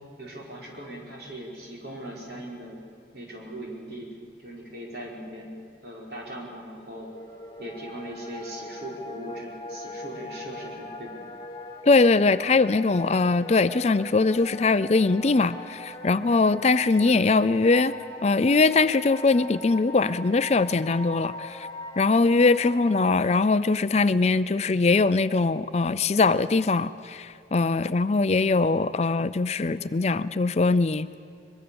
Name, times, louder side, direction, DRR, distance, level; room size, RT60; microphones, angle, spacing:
voice 1, 0.2-2.8 3.1-4.1 4.4-5.5 5.8-7.1 7.6-11.2 16.2-16.5, right 1 dB, 55° right, -2 dB, 4.9 m, -39 dB
sound 1, 6.8-23.3, left 2 dB, 20° left, 1.2 m, -40 dB
voice 2, 11.8-17.9 18.2-21.7 22.0-31.1, left 3 dB, 35° left, 14 dB, 0.5 m, -22 dB
23.0 x 22.5 x 7.0 m, 2.4 s
head